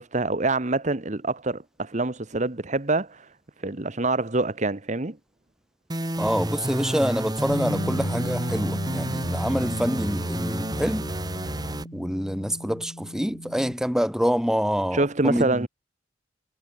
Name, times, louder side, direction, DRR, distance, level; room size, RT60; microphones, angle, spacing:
voice 1, 0.0-3.3 3.6-5.2 14.9-15.7, right 2 dB, 40° right, 1.2 m, -25 dB
sound 1, 5.9-11.8, right 1 dB, 20° right, 3.1 m, -30 dB
voice 2, 6.2-11.0 11.9-15.7, equal, 5° right, 1.9 m, -26 dB
Bass guitar, 7.5-13.7, equal, 75° left, 5.5 m, -36 dB
head